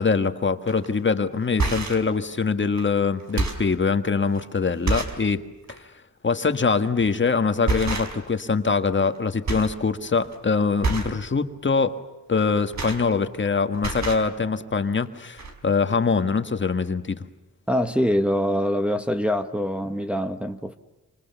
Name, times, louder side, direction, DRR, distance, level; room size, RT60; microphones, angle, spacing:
voice 1, 0.0-5.4 6.2-12.0 12.3-17.2, left 4 dB, 35° left, 1.6 m, -23 dB
sound 1, 0.7-0.9 1.4-2.1 2.8-2.9 3.2-3.7 4.3-4.4 4.8-5.2 5.6-5.8 7.0-7.2 7.6-8.4 8.7-9.2 9.4-9.8 10.1-10.3 10.8-11.2 12.4-13.5 13.7-14.3 15.1-15.2 15.4-15.5, right 3 dB, 60° right, 4.7 m, -28 dB
voice 2, 17.7-20.8, equal, 5° right, 1.2 m, -24 dB
28.0 x 26.5 x 7.0 m
wide cardioid pair, 135°, 31 cm